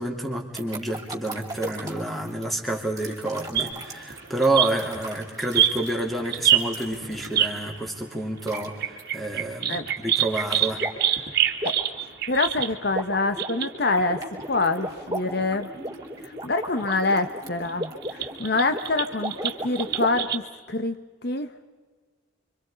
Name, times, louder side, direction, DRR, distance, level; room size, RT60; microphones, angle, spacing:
voice 1, 0.0-11.2, right 1 dB, ahead, 1 dB, 3.2 m, -29 dB
sound 1, 0.5-7.6 8.4-8.7 9.0-9.2 10.8-11.1 11.5-20.1, right 1 dB, 15° right, 3.8 m, -36 dB
sound 2, 3.5-7.7 8.3-14.5 14.8-15.0 15.4-15.5 16.8-16.9 17.6-20.4, right 10 dB, 50° right, 2.0 m, -26 dB
voice 2, 12.3-14.2 14.5-15.7 16.2-20.4 20.7-21.0 21.2-21.5, left 3 dB, 50° left, 9 dB, 1.0 m, -25 dB
30.0 x 25.0 x 5.1 m, 1.4 s
head